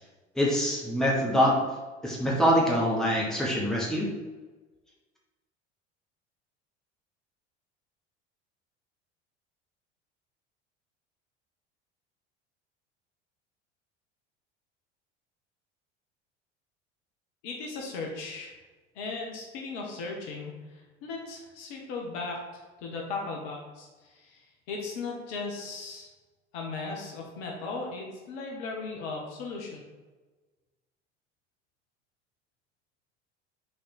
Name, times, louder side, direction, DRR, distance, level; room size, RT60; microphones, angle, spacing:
voice 1, 0.3-1.6 2.0-4.1, equal, ahead, -4 dB, 1.6 m, -24 dB
voice 2, 17.4-18.5 18.9-26.1 26.5-29.8, left 3 dB, 55° left, 0 dB, 1.3 m, -37 dB
6.2 x 4.2 x 4.0 m, 1.3 s
figure-of-eight pair, 70°, 36 cm